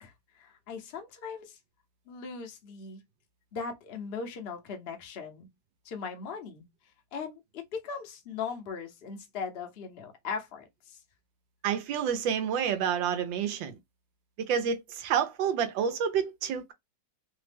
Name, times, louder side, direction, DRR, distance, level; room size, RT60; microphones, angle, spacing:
voice 1, 0.0-1.6 2.1-3.0 3.5-5.5 5.8-6.7 7.1-11.0, left 5 dB, 60° left, 0.6 m, -39 dB
voice 2, 11.6-13.8 14.4-16.7, right 8 dB, 90° right, 1.3 m, -29 dB
3.3 x 2.0 x 3.3 m
omnidirectional pair, 2.0 m